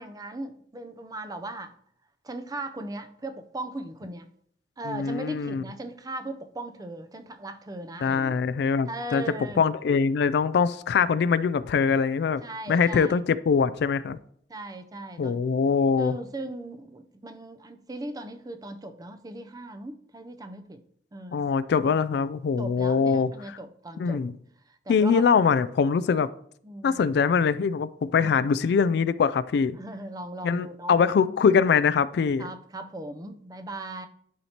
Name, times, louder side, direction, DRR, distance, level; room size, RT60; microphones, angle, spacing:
voice 1, 0.0-1.7 2.2-4.3 4.8-8.4 8.9-9.6 12.4-13.2 14.5-15.4 16.0-20.8 21.1-21.4 22.6-24.2 24.7-25.2 26.6-27.0 28.1-28.4 29.8-31.0 32.4-34.1, right 1 dB, 20° right, 8 dB, 0.5 m, -38 dB
voice 2, 4.9-5.6 8.0-9.2 9.6-12.4 12.7-14.2 15.2-16.1 21.3-23.3 24.0-24.3 24.9-26.3 26.8-29.8 30.4-32.5, left 6 dB, 65° left, 15 dB, 0.3 m, -23 dB
11.0 x 4.4 x 2.8 m, 0.64 s
head